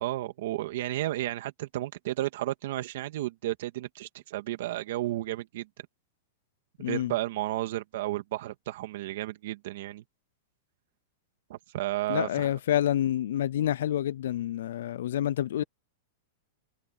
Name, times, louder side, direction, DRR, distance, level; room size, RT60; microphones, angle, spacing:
voice 1, 0.0-5.7 6.8-10.0 11.5-12.5, right 15 dB, 55° right, 2.4 m, -32 dB
voice 2, 6.8-7.1 12.1-15.6, left 11 dB, 70° left, 0.4 m, -28 dB
supercardioid pair, 170°, 0 cm